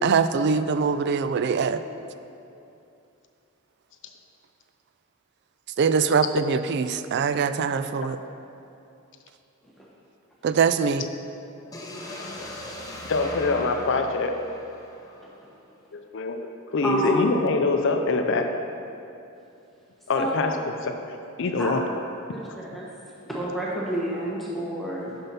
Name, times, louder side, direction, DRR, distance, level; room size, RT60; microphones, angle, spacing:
voice 1, 0.0-1.8 5.8-8.2 10.4-11.0, right 5 dB, 55° right, 11 dB, 0.3 m, -23 dB
sound 1, 11.7-15.6, left 1 dB, 15° left, 0.8 m, -39 dB
voice 2, 13.1-14.3 15.9-18.5 20.1-20.5 20.8-21.8 25.1-25.2, left 3 dB, 60° left, 5 dB, 0.5 m, -25 dB
voice 3, 16.8-17.2 20.2-20.6 21.6-21.7 22.3-22.5 22.7-22.9 23.3-25.1, equal, ahead, -6 dB, 1.1 m, -28 dB
6.9 x 5.5 x 5.6 m, 2.7 s
head